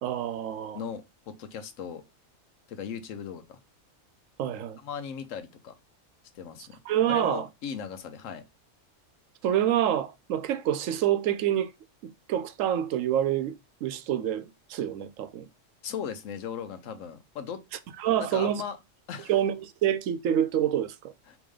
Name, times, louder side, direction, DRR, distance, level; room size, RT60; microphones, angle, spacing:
voice 1, 0.0-0.8 4.4-4.8 6.9-7.5 9.4-11.7 12.0-13.6 13.8-15.5 18.0-18.6 19.3-21.1, right 10 dB, 80° right, 1.0 m, -27 dB
voice 2, 0.7-2.0 2.7-3.6 4.8-5.7 6.3-6.8 7.1-8.4 15.8-17.6 18.2-18.8 19.1-19.3 21.3-21.4, left 7 dB, 85° left, 1.1 m, -37 dB
3.6 x 3.0 x 4.7 m
omnidirectional pair, 1.3 m